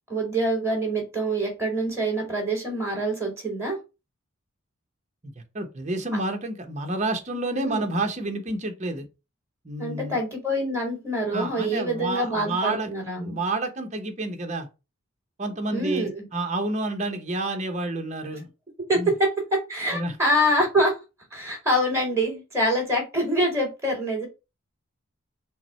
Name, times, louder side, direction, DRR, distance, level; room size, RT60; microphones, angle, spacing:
voice 1, 0.1-3.8 7.5-7.8 9.8-13.4 15.7-16.2 18.9-21.0 21.3-24.3, right 1 dB, 15° right, 2.0 m, -25 dB
voice 2, 5.2-9.0 9.6-10.2 11.3-12.9 13.2-14.7 15.4-18.5 18.9-19.1 19.9-20.2, right 2 dB, 35° right, 0.8 m, -29 dB
5.7 x 2.1 x 4.2 m
head